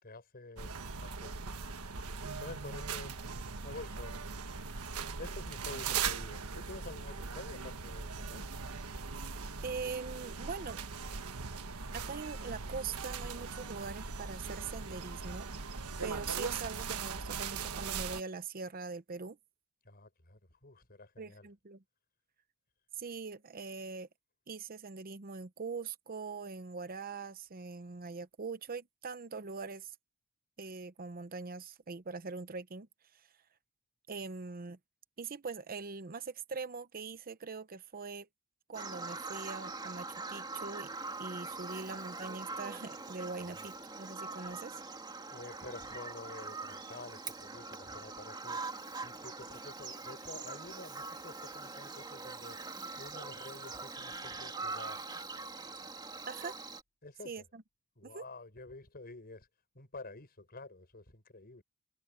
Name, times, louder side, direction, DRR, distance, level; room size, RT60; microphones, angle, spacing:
voice 1, 0.0-1.5 2.4-3.1 3.6-4.2 5.2-8.5 19.8-21.5 41.5-41.9 45.3-48.6 49.0-52.6 53.0-55.0 57.0-57.3 58.0-59.5 59.8-61.6, left 2 dB, 45° left, 5.3 m, -49 dB
sound 1, 0.6-18.2, right 5 dB, 90° right, 1.3 m, -40 dB
voice 2, 9.6-10.8 11.9-15.5 16.0-19.4 21.2-21.8 23.0-24.1 24.5-29.9 30.6-32.9 33.2-33.3 34.1-34.8 35.2-38.3 38.7-40.9 41.2-44.8 56.3-56.6 57.2-57.6 58.0-58.2, right 4 dB, 40° right, 0.7 m, -42 dB
Bird vocalization bird call bird song, 38.7-56.8, right 3 dB, 20° right, 2.8 m, -43 dB
head